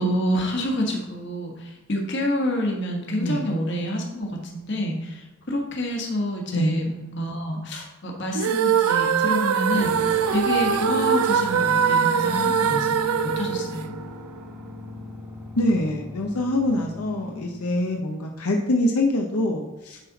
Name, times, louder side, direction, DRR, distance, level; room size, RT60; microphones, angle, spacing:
voice 1, 0.0-13.9, equal, 50° left, 0 dB, 1.5 m, -28 dB
sound 1, 8.3-14.5, right 7 dB, 85° right, 0.4 m, -22 dB
sound 2, 9.7-18.0, left 3 dB, 10° right, 1.2 m, -38 dB
voice 2, 15.6-20.0, left 1 dB, 85° left, 1 dB, 0.8 m, -24 dB
9.8 x 4.2 x 4.0 m, 1.1 s
head